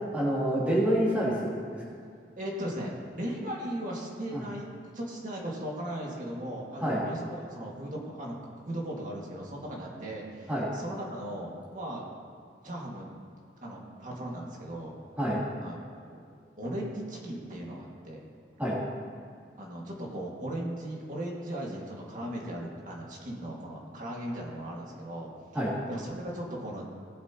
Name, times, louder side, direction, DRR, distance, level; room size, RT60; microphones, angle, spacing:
voice 1, 0.1-1.8 4.3-4.4 6.8-7.0 10.5-10.7 15.2-15.4 18.6-18.8 25.5-25.7, equal, 10° right, -8 dB, 2.9 m, -27 dB
voice 2, 2.4-8.3 8.7-12.0 12.6-13.0 13.6-14.9 15.6-16.2 16.6-18.2 19.6-25.3 25.9-26.8, right 1 dB, 45° right, -3 dB, 2.1 m, -37 dB
19.0 x 7.8 x 3.0 m, 2.2 s
head